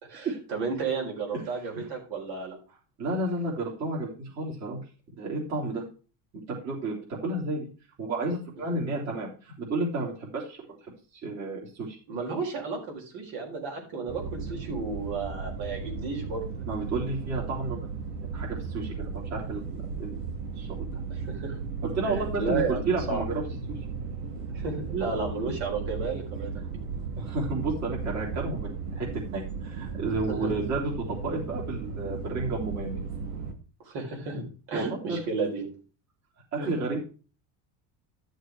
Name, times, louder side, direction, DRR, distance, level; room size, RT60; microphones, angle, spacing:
voice 1, 0.0-2.6 12.1-16.6 21.1-21.6 22.0-23.2 24.5-26.5 30.3-30.5 33.8-35.7 36.6-36.7, right 4 dB, 60° right, 0 dB, 4.3 m, -33 dB
voice 2, 3.0-4.8 5.2-5.8 6.3-7.7 8.0-12.0 16.7-17.9 18.3-20.2 20.6-20.9 21.8-23.4 23.7-23.8 27.2-33.0 34.7-35.2 36.5-37.0, right 2 dB, 35° right, -4 dB, 3.7 m, -31 dB
sound 1, 14.1-33.5, right 5 dB, 75° right, 2.5 m, -35 dB
12.0 x 6.6 x 4.7 m, 0.36 s
cardioid pair, 140°, 46 cm